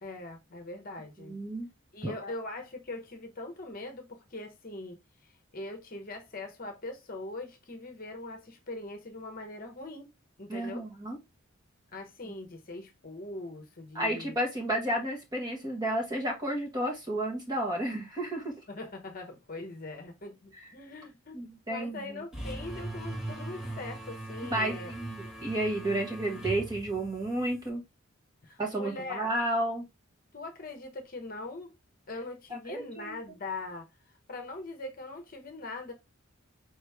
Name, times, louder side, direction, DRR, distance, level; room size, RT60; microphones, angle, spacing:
voice 1, 0.0-1.4 1.9-10.1 10.4-10.9 11.9-14.4 18.7-21.4 21.7-24.9 28.4-29.3 30.3-31.7 32.1-33.9 34.3-35.9, left 2 dB, 45° left, 0.9 m, -41 dB
voice 2, 1.2-1.7 2.0-2.3 10.5-11.2 13.9-18.5 21.3-22.2 24.4-27.8 28.6-29.8 32.7-33.2, right 1 dB, 20° right, 1.4 m, -32 dB
sound 1, 22.3-27.7, right 1 dB, 5° right, 1.4 m, -40 dB
4.9 x 3.1 x 3.3 m
head